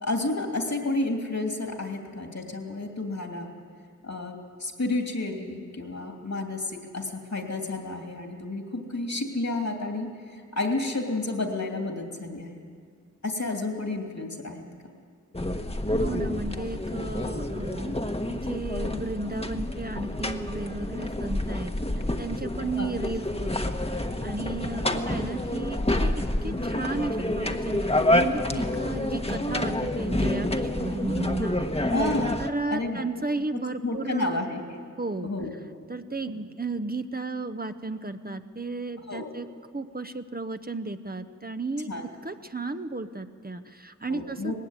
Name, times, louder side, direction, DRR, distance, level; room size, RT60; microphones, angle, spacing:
voice 1, 0.0-3.5 4.0-12.7 13.2-14.6 17.8-17.9 22.8-23.0 24.8-25.0 26.4-26.6 31.9-32.4 32.7-33.0 33.8-34.8 35.2-35.5 39.1-39.3 41.9-42.0 44.1-44.5, left 2 dB, 65° left, 3 dB, 2.9 m, -31 dB
sound 1, 15.3-32.5, left 1 dB, 20° left, 1.2 m, -28 dB
voice 2, 15.9-18.0 18.3-21.7 22.2-31.9 32.4-34.4 35.0-35.3 35.9-39.5 39.7-41.9 42.2-44.5, right 3 dB, 30° right, 9 dB, 0.8 m, -34 dB
19.0 x 16.0 x 9.5 m, 2.1 s
wide cardioid pair, 40°, 30 cm